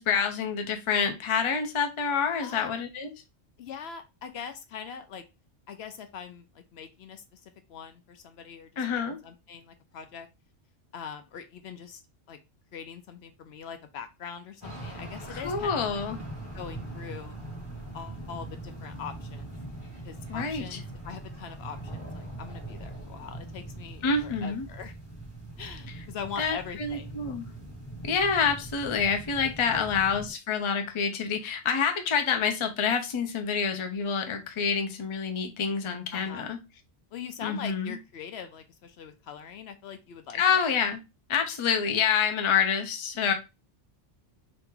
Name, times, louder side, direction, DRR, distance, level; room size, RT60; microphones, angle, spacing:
voice 1, 0.0-3.1 8.8-9.2 15.3-16.2 20.3-20.8 24.0-24.6 26.4-27.5 28.0-36.6 37.4-38.0 40.3-41.0 41.3-43.3, left 6 dB, 40° left, 5 dB, 0.5 m, -27 dB
voice 2, 3.6-5.2 5.7-10.3 10.9-12.0 12.3-12.4 12.7-16.0 16.5-17.4 17.9-19.5 20.0-24.9 25.6-27.3 29.6-29.9 36.1-36.5 37.1-40.6, left 7 dB, 70° left, 8 dB, 0.8 m, -42 dB
sound 1, 14.6-30.3, right 2 dB, 15° left, 1.9 m, -41 dB
2.9 x 2.8 x 3.6 m, 0.25 s
omnidirectional pair, 1.2 m